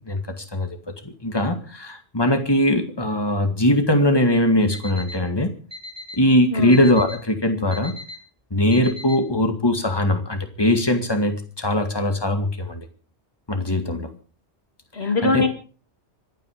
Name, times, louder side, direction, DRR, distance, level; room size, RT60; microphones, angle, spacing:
voice 1, 1.0-5.5 6.2-8.0 8.5-12.8 13.5-14.1 15.2-15.4, left 1 dB, 20° left, 6 dB, 2.1 m, -20 dB
Alarm, 4.7-5.2 5.7-6.2 6.7-7.2 7.7-8.2 8.7-9.2, left 1 dB, 20° right, 2.9 m, -36 dB
voice 2, 15.0-15.5, left 3 dB, 60° left, 6 dB, 2.7 m, -22 dB
25.5 x 9.3 x 5.1 m, 0.39 s
omnidirectional pair, 1.2 m